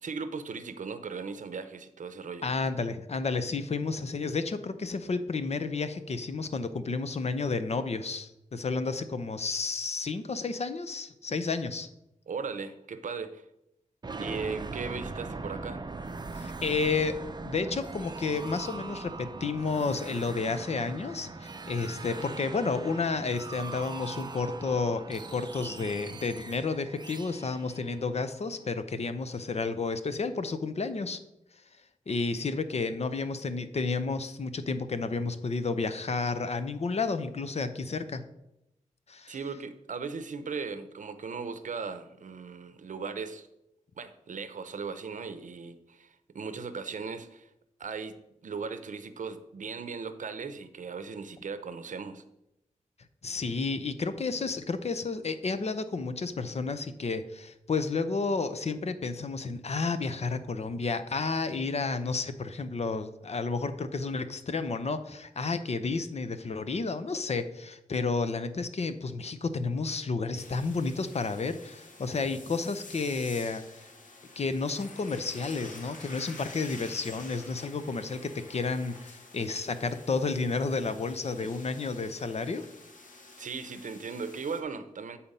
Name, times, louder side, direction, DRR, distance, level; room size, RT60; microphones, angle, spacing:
voice 1, 0.0-2.5 12.3-13.4 14.1-15.8 39.3-43.5 44.0-47.5 47.8-48.2 48.4-52.2 81.4-81.5 83.4-85.2, right 5 dB, 75° right, 0.6 m, -38 dB
voice 2, 2.4-11.9 16.3-17.2 17.4-31.2 32.1-38.2 39.1-39.4 53.2-73.9 74.4-82.7, left 4 dB, 55° left, 0.6 m, -31 dB
sound 1, 14.0-28.7, right 3 dB, 35° right, 0.6 m, -41 dB
sound 2, 70.4-84.6, left 3 dB, 85° left, 1.1 m, -49 dB
8.7 x 4.2 x 5.4 m
wide cardioid pair, 85°, 13 cm